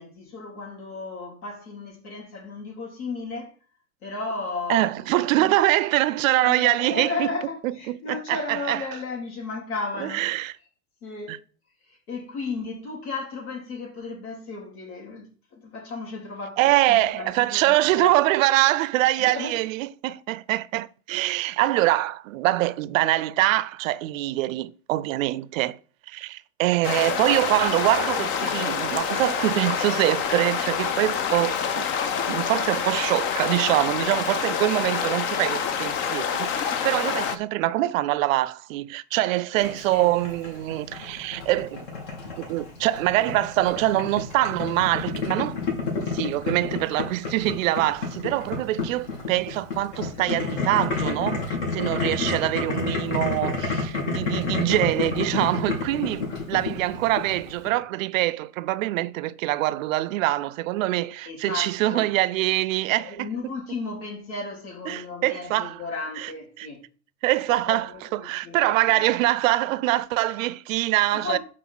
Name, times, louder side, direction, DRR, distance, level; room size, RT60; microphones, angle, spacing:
voice 1, 0.0-3.5 4.0-4.9 5.3-5.5 6.4-10.2 11.0-11.4 11.8-18.2 19.2-19.6 39.9-40.1 61.3-62.1 63.0-66.8 67.5-69.0 71.1-71.4, left 3 dB, 70° left, 3.9 m, -34 dB
voice 2, 4.7-7.3 7.6-8.8 10.0-10.5 11.3-11.4 16.6-25.8 26.1-31.9 32.3-41.8 42.4-45.6 46.1-63.3 64.9-65.8 66.2-66.3 66.6-66.7 67.2-71.4, right 16 dB, 60° right, 0.6 m, -24 dB
sound 1, 26.8-37.4, left 7 dB, 25° left, 0.5 m, -27 dB
Boiling, 39.6-57.7, left 4 dB, 55° left, 3.2 m, -30 dB
5.9 x 4.5 x 6.1 m
hypercardioid pair, 125°, 45 cm